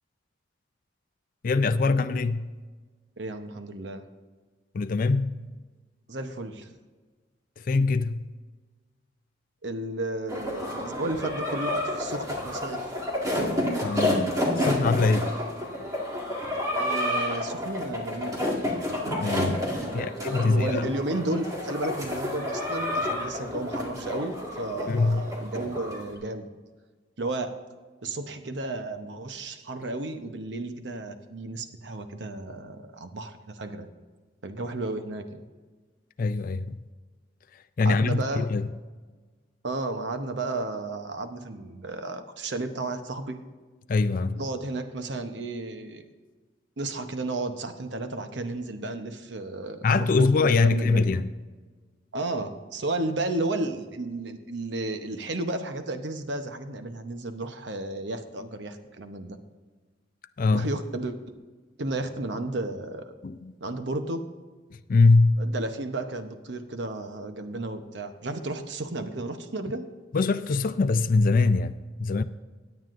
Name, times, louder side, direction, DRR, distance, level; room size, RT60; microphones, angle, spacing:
voice 1, 1.4-2.5 4.7-5.4 7.6-8.3 13.8-15.3 19.2-19.7 19.9-20.9 24.9-25.3 36.2-36.8 37.5-38.7 43.9-44.4 49.8-51.3 60.4-60.7 63.2-63.6 64.7-65.4 70.1-72.2, left 3 dB, 45° left, 0.4 m, -23 dB
voice 2, 3.2-4.0 6.1-6.7 9.6-12.9 16.7-18.4 19.8-26.5 27.2-27.5 28.0-33.9 34.4-35.4 37.8-38.5 39.6-43.4 44.4-46.1 46.8-51.0 52.1-59.4 60.5-61.2 61.8-63.1 63.6-64.2 65.4-69.9, right 2 dB, 70° right, 0.9 m, -33 dB
sound 1, 10.3-26.1, left 1 dB, 20° right, 1.8 m, -30 dB
17.0 x 9.5 x 2.6 m
head